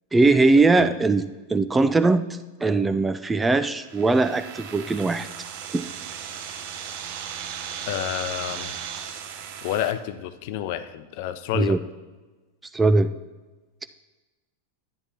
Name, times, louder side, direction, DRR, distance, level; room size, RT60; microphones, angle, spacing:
voice 1, 0.1-5.3 5.7-5.8 11.5-11.8 12.7-13.1, right 3 dB, 10° right, 12 dB, 0.3 m, -20 dB
sound 1, 3.8-9.9, right 8 dB, 45° right, 0.7 m, -36 dB
voice 2, 7.9-8.7 9.6-11.8, left 11 dB, 50° left, 12 dB, 0.5 m, -29 dB
11.0 x 9.7 x 2.8 m, 1.3 s
figure-of-eight pair, 90°, 0 cm